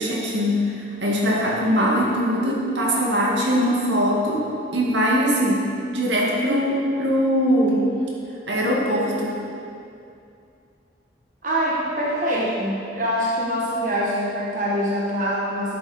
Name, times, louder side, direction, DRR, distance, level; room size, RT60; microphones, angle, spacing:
voice 1, 0.0-4.5 4.7-5.6 5.9-7.9 8.5-9.4, equal, 80° right, -3 dB, 1.9 m, -21 dB
voice 2, 11.4-15.8, equal, 45° right, -5 dB, 1.3 m, -24 dB
10.5 x 8.0 x 4.2 m, 2.5 s
head